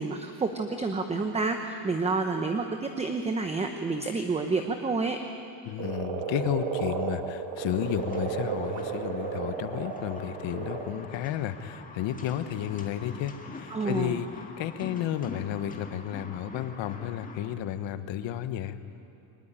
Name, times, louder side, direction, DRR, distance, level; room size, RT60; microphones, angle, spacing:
voice 1, 0.0-5.2 13.7-14.2, right 3 dB, 15° right, 5 dB, 0.8 m, -29 dB
voice 2, 5.6-14.3 14.6-18.8, left 11 dB, 60° left, 11 dB, 1.3 m, -32 dB
Frog, 5.8-10.9, right 6 dB, 65° right, 2.9 m, -33 dB
sound 1, 7.7-17.5, left 4 dB, 15° left, 2.0 m, -45 dB
23.0 x 20.5 x 8.9 m, 3.0 s
cardioid pair, 170°, 50 cm